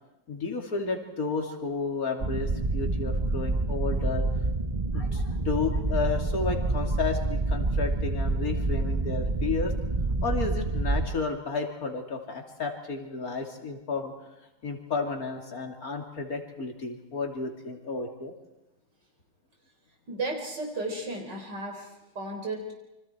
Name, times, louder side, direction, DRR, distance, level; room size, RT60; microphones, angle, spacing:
voice 1, 0.3-4.3 4.9-9.7 10.2-14.1 14.6-18.3, left 4 dB, 55° left, 3 dB, 3.4 m, -32 dB
sound 1, 2.2-11.1, right 2 dB, 25° right, 1.2 m, -28 dB
voice 2, 20.1-22.7, right 2 dB, 75° right, 1 dB, 4.9 m, -34 dB
28.5 x 25.5 x 4.6 m, 0.98 s
omnidirectional pair, 1.9 m